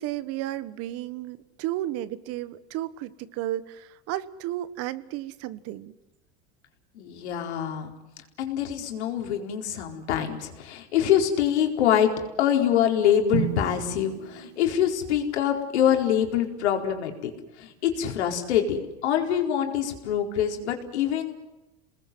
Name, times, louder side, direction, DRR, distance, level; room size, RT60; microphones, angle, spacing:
voice 1, 0.0-5.9, right 14 dB, 45° right, 15 dB, 1.4 m, -33 dB
voice 2, 6.9-7.9 8.4-12.1 12.4-17.3 17.6-21.3, left 9 dB, 85° left, 3 dB, 4.6 m, -25 dB
Drum, 13.3-15.3, right 14 dB, 75° right, 2.1 m, -33 dB
29.5 x 20.5 x 7.9 m, 0.99 s
supercardioid pair, 135°, 33 cm